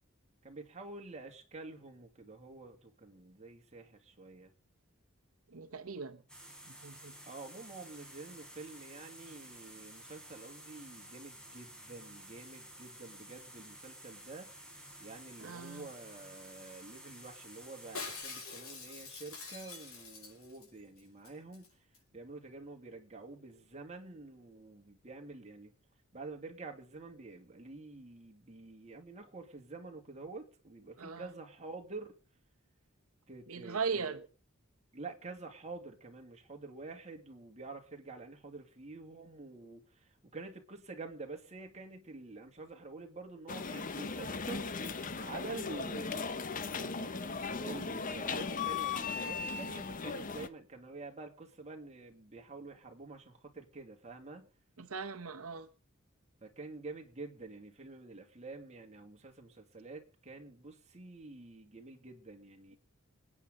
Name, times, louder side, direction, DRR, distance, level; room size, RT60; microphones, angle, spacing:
voice 1, 0.4-4.5 7.2-14.6 15.0-21.7 22.1-25.7 26.1-32.1 33.3-34.3 34.9-44.7 45.2-54.5 56.4-62.8, right 3 dB, 35° right, 2.4 m, -48 dB
voice 2, 5.5-6.2 6.8-7.1 15.4-15.9 31.0-31.3 33.5-34.2 54.8-55.7, right 5 dB, 85° right, 1.0 m, -38 dB
sound 1, 6.3-18.2, right 1 dB, 5° left, 4.2 m, -52 dB
Shatter, 17.9-20.7 21.0-21.1 21.2-21.7 21.9-22.0, left 4 dB, 85° left, 5.7 m, -45 dB
sound 2, 43.5-50.5, left 5 dB, 40° left, 0.9 m, -37 dB
27.5 x 9.2 x 3.8 m
head